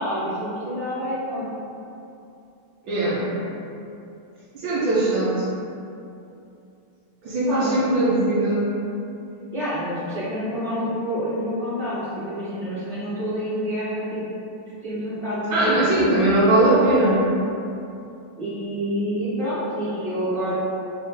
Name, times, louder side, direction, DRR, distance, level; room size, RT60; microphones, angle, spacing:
voice 1, 0.0-1.6 7.5-7.8 9.5-14.2 14.8-15.9 18.4-20.6, equal, 15° left, -16 dB, 1.3 m, -28 dB
voice 2, 2.8-3.3 4.5-5.4 7.2-8.7 15.5-17.2, right 2 dB, 75° right, -8 dB, 1.5 m, -20 dB
3.5 x 3.3 x 3.1 m, 2.7 s
omnidirectional pair, 2.4 m